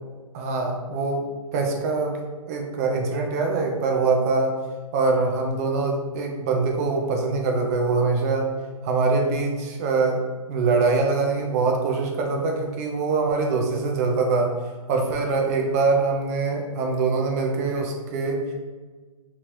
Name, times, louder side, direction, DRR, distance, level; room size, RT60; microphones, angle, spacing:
voice 1, 0.3-1.2 1.5-2.2 2.5-4.5 4.9-8.5 8.8-10.2 10.5-14.5 14.9-18.5, right 4 dB, 25° right, 2 dB, 0.4 m, -23 dB
3.1 x 2.3 x 3.0 m, 1.4 s
hypercardioid pair, 140°, 19 cm